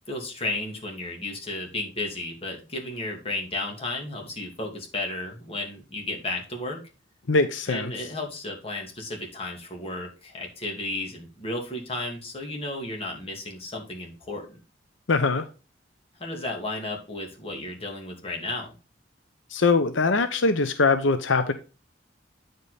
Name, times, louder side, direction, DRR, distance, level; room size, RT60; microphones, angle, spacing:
voice 1, 0.1-6.8 7.7-14.6 16.2-18.7, left 2 dB, 30° left, 0 dB, 2.6 m, -33 dB
voice 2, 7.3-7.9 15.1-15.4 19.5-21.5, left 3 dB, 85° left, 9 dB, 0.8 m, -22 dB
9.1 x 5.3 x 4.1 m, 0.32 s
head